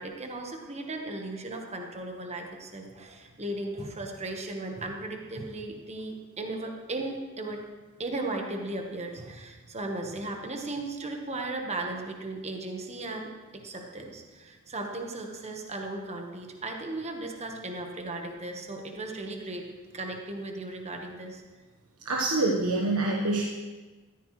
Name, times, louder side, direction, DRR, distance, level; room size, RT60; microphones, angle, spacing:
voice 1, 0.0-7.6 8.0-19.7 19.9-21.4, right 2 dB, 30° right, 2 dB, 1.3 m, -36 dB
voice 2, 22.0-23.4, right 2 dB, 75° right, -2 dB, 1.3 m, -26 dB
15.0 x 13.5 x 3.2 m, 1.3 s
head